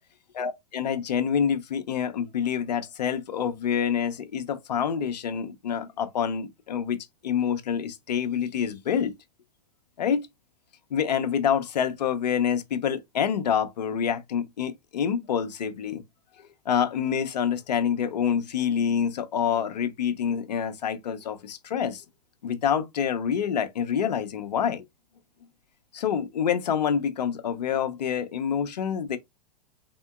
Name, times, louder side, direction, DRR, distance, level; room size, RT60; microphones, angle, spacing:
voice 1, 0.4-7.0 7.2-9.1 10.0-10.3 10.9-16.0 16.7-22.0 22.4-24.8 25.9-29.2, left 8 dB, 75° left, 0.7 m, -27 dB
3.7 x 3.5 x 2.3 m
hypercardioid pair, 105°, 21 cm